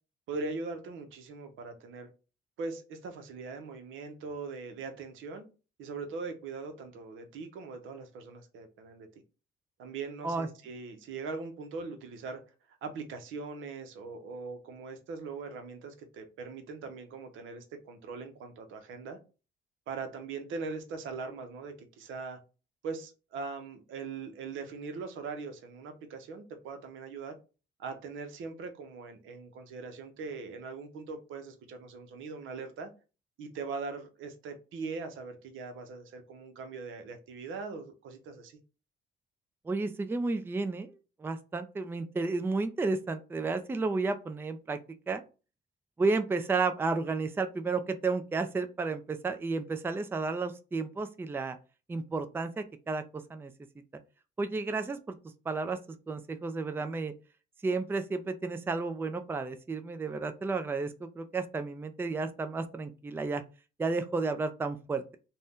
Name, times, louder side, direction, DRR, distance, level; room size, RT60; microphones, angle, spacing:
voice 1, 0.3-2.1 2.6-5.4 5.8-9.1 9.8-12.4 12.7-19.2 19.9-22.4 22.8-27.4 27.8-32.9 33.4-38.5, right 4 dB, 80° right, 6 dB, 0.7 m, -41 dB
voice 2, 39.7-40.9 41.2-44.8 45.1-45.2 46.0-51.6 51.9-53.5 54.4-55.1 55.5-55.8 56.1-57.1 57.6-63.4 63.8-65.2, right 3 dB, 10° right, 8 dB, 0.3 m, -32 dB
2.6 x 2.2 x 3.5 m, 0.32 s
cardioid pair, 90°, 20 cm